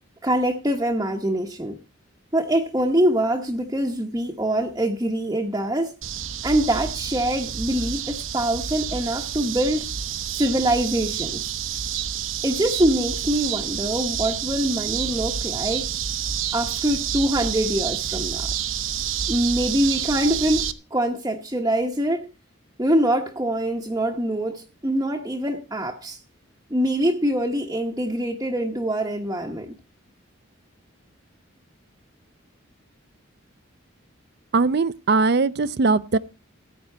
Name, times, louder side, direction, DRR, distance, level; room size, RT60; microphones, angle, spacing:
voice 1, 0.2-1.8 2.3-5.9 6.4-9.9 10.3-11.5 12.4-15.9 16.5-18.5 19.3-22.2 22.8-26.2 26.7-29.7, right 1 dB, 15° right, 0.9 m, -24 dB
sound 1, 6.0-20.7, right 9 dB, 75° right, 0.8 m, -29 dB
voice 2, 34.5-36.2, right 3 dB, 50° right, 0.5 m, -20 dB
14.5 x 9.2 x 4.5 m
head